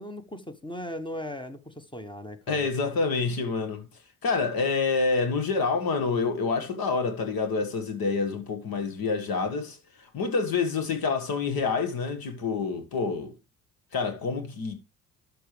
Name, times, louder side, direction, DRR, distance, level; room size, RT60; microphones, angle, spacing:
voice 1, 0.0-2.7, left 1 dB, 10° left, 1.2 m, -38 dB
voice 2, 2.5-3.9 4.2-13.4 13.9-14.7, left 4 dB, 50° left, 1.7 m, -27 dB
13.0 x 4.7 x 3.3 m
hypercardioid pair, 50°, 44 cm